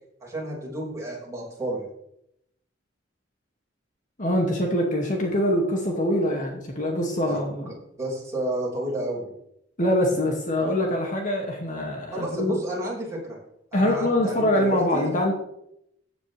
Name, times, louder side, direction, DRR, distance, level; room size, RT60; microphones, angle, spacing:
voice 1, 0.2-1.9 7.2-7.4 7.7-9.3 12.1-13.4 13.7-15.2, right 1 dB, 15° right, -4 dB, 5.5 m, -31 dB
voice 2, 4.2-7.7 9.8-12.5 13.7-15.3, left 1 dB, 45° left, 0 dB, 2.3 m, -24 dB
15.5 x 9.5 x 3.5 m, 0.75 s
head